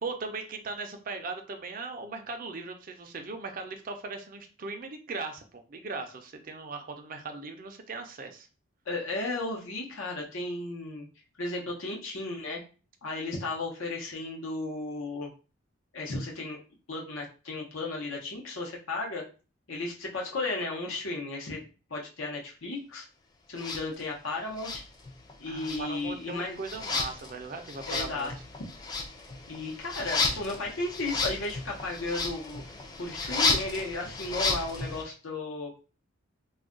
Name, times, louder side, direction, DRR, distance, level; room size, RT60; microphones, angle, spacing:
voice 1, 0.0-8.5 25.5-28.3, right 3 dB, 40° right, 5 dB, 0.5 m, -38 dB
voice 2, 8.9-11.1 11.4-12.6 13.0-15.3 15.9-16.6 16.9-19.2 19.7-21.6 21.9-23.0 23.5-24.8 25.4-26.6 27.9-28.3 29.5-32.6 33.0-35.7, left 2 dB, 80° left, -2 dB, 0.8 m, -34 dB
sound 1, 23.6-23.8 24.6-25.3 25.6-35.0, left 4 dB, 20° left, 0.4 m, -33 dB
2.3 x 2.2 x 3.7 m, 0.35 s
head